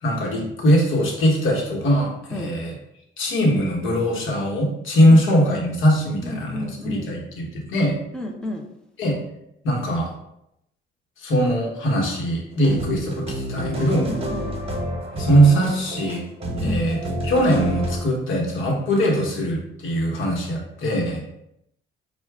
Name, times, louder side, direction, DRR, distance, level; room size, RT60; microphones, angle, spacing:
voice 1, 0.0-2.8 3.2-7.9 9.0-9.2 9.6-10.1 11.2-14.1 15.1-16.2 16.6-21.2, equal, 80° left, 0 dB, 1.2 m, -21 dB
voice 2, 6.2-7.1 8.1-8.6 14.0-14.6 16.6-16.9, left 1 dB, 5° left, 0 dB, 0.7 m, -32 dB
sound 1, 12.5-18.0, right 1 dB, 30° right, 1.0 m, -28 dB
5.6 x 2.4 x 3.5 m, 0.80 s
cardioid pair, 90°, 20 cm